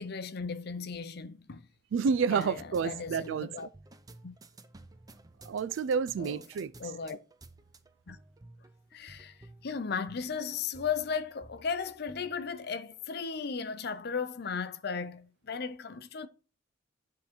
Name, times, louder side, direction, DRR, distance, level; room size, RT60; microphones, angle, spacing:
voice 1, 0.0-1.7 2.3-3.7 4.2-4.3 6.2-6.4 6.8-7.2 8.1-8.2 8.9-9.4 9.6-16.3, left 6 dB, 55° left, 0.6 m, -36 dB
voice 2, 1.9-3.7 5.4-6.7, right 6 dB, 75° right, 0.3 m, -30 dB
sound 1, 2.4-13.3, right 2 dB, 20° right, 0.5 m, -55 dB
9.9 x 3.8 x 4.4 m
head